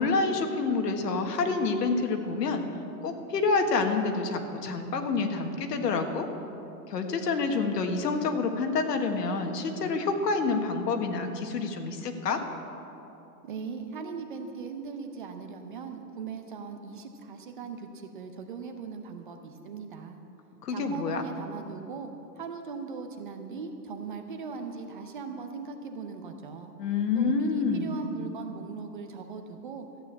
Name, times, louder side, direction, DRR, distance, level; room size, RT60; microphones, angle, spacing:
voice 1, 0.0-2.6 3.0-6.3 6.9-12.4 20.6-21.2 26.8-28.0, left 4 dB, 70° left, 5 dB, 1.7 m, -28 dB
voice 2, 13.4-20.2 20.7-26.7 27.1-29.9, right 5 dB, 30° right, 5 dB, 0.7 m, -39 dB
13.5 x 9.4 x 7.4 m, 2.8 s
hypercardioid pair, 175°, 49 cm